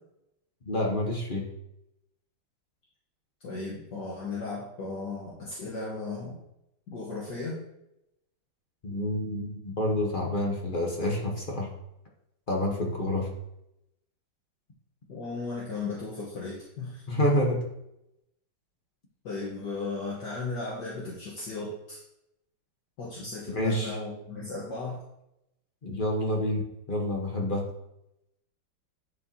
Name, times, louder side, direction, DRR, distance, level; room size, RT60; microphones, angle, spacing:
voice 1, 0.7-1.5 8.8-11.7 12.5-13.3 17.1-17.6 23.5-24.0 25.8-26.6 26.9-27.7, left 1 dB, 35° left, -1 dB, 0.9 m, -28 dB
voice 2, 3.4-6.4 6.9-7.6 15.1-17.0 19.2-22.0 23.0-25.0, left 3 dB, 60° left, -6 dB, 1.7 m, -36 dB
10.0 x 4.5 x 2.8 m, 0.84 s
omnidirectional pair, 2.2 m